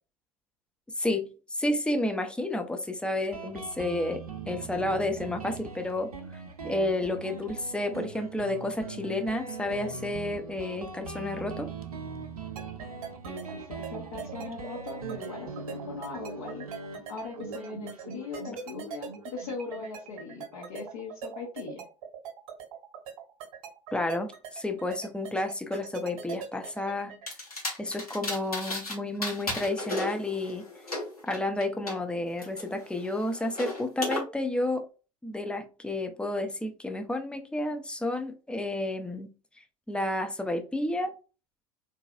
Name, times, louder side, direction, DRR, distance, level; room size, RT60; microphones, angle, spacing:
voice 1, 1.0-6.1 6.6-11.7 23.9-27.2 27.8-30.7 31.2-34.9 35.2-39.3 39.9-41.1, left 1 dB, 5° left, 0.5 m, -31 dB
Guitar, 3.3-20.5, right 4 dB, 80° right, 0.6 m, -41 dB
sound 1, 12.6-27.3, right 8 dB, 60° right, 1.0 m, -41 dB
voice 2, 13.2-16.6 17.1-21.8, left 4 dB, 55° left, 1.0 m, -40 dB
sound 2, 27.3-28.9 29.2-31.9 32.4-34.2, left 2 dB, 90° left, 1.1 m, -35 dB
3.8 x 2.6 x 2.3 m
figure-of-eight pair, 75°, 19 cm